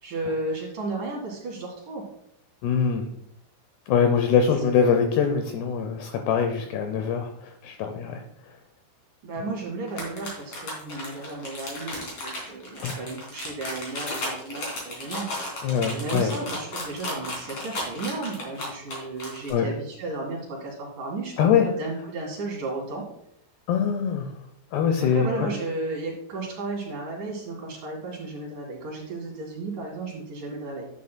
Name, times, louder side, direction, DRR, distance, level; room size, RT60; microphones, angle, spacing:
voice 1, 0.0-2.0 9.2-15.5 15.9-21.3 21.6-23.0 25.1-30.9, right 2 dB, 55° right, -2 dB, 2.9 m, -34 dB
voice 2, 2.6-3.0 3.9-8.2 12.8-12.9 15.6-16.3 19.5-19.7 21.4-21.7 23.7-24.3 24.7-25.5, left 7 dB, 80° left, 5 dB, 2.4 m, -23 dB
sound 1, 9.9-19.5, left 1 dB, 35° left, 3.9 m, -34 dB
11.0 x 9.4 x 2.2 m, 0.73 s
omnidirectional pair, 5.4 m